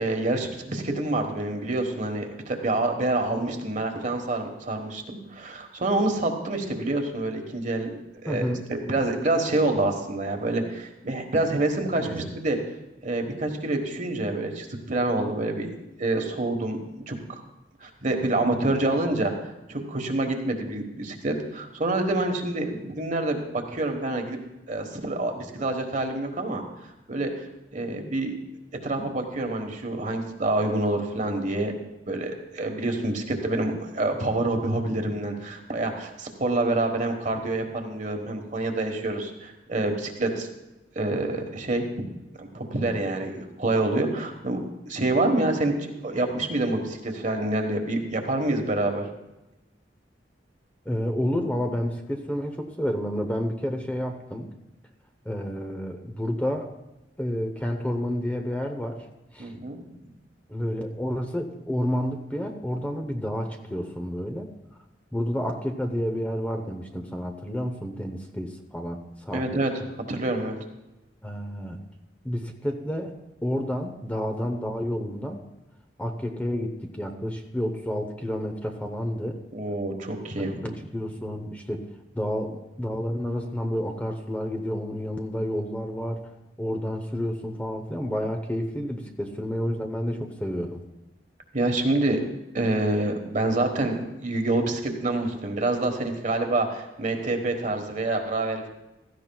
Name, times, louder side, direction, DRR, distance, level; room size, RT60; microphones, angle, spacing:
voice 1, 0.0-12.6 13.0-15.7 16.0-16.8 17.1-17.2 17.8-19.3 19.7-24.4 24.7-26.6 27.1-27.3 27.7-28.3 28.8-31.7 32.1-40.5 40.9-42.1 42.4-44.6 44.9-49.1 59.4-59.8 69.3-69.7 70.1-70.6 79.5-80.7 91.5-92.2 92.5-98.7, right 2 dB, 45° right, 4 dB, 1.3 m, -27 dB
voice 2, 8.3-8.6 12.0-12.2 50.8-54.5 55.2-56.7 57.2-59.1 59.3-59.5 60.5-64.5 65.1-69.6 71.2-71.8 72.2-73.1 73.4-75.4 76.0-79.4 80.6-81.9 82.1-86.3 86.6-90.8, equal, 10° left, 4 dB, 0.8 m, -30 dB
16.0 x 13.5 x 2.3 m, 0.98 s
head